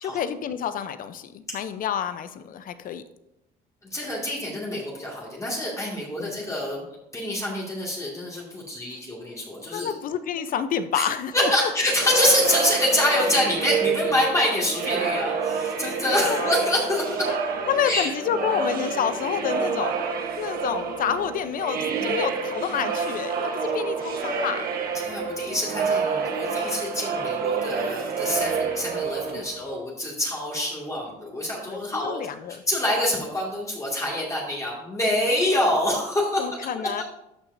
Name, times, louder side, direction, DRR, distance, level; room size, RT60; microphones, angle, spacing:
voice 1, 0.0-3.0 6.2-6.4 8.9-9.0 9.7-11.7 16.2-16.5 17.3-17.4 17.7-20.0 20.4-24.7 29.3-29.5 31.7-32.6 36.4-37.0, left 8 dB, 55° left, 11 dB, 0.7 m, -29 dB
voice 2, 3.9-6.8 7.1-9.9 10.9-11.1 11.3-17.3 17.8-18.1 25.0-32.4 32.7-36.5 36.7-37.0, left 1 dB, 20° left, -4 dB, 2.2 m, -26 dB
sound 1, 11.9-29.7, right 5 dB, 65° right, 1.3 m, -28 dB
12.5 x 5.9 x 2.7 m, 0.87 s
cardioid pair, 110°, 17 cm